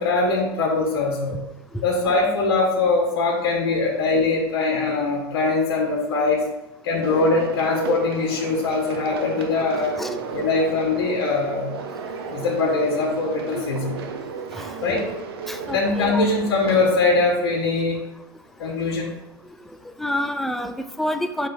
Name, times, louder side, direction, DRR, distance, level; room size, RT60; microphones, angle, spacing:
voice 1, 0.0-1.4 1.8-6.4 6.8-9.9 10.3-11.7 12.3-14.0 14.8-15.0 15.7-18.0 18.6-19.1, left 3 dB, 85° left, -2 dB, 1.5 m, -22 dB
sound 1, 7.0-16.9, right 5 dB, 85° right, 0.8 m, -33 dB
voice 2, 14.4-15.0 15.5-16.2 20.0-21.5, left 1 dB, ahead, 7 dB, 0.4 m, -28 dB
5.9 x 4.9 x 3.6 m, 0.95 s
supercardioid pair, 125°, 12 cm